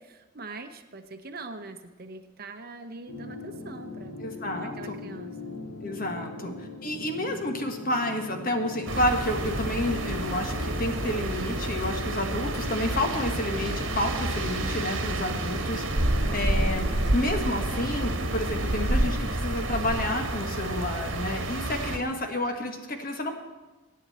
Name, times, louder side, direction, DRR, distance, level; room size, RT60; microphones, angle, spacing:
voice 1, 0.0-4.2 4.6-5.6 6.2-6.6, right 3 dB, 45° right, 8 dB, 0.9 m, -43 dB
sound 1, 3.1-19.2, left 3 dB, 80° left, 2.0 m, -40 dB
voice 2, 4.2-5.0 5.8-6.5 6.8-23.4, left 1 dB, 40° left, 5 dB, 1.5 m, -30 dB
sound 2, 8.9-22.0, right 1 dB, 60° right, 1.4 m, -29 dB
22.0 x 9.3 x 4.3 m, 1.2 s
head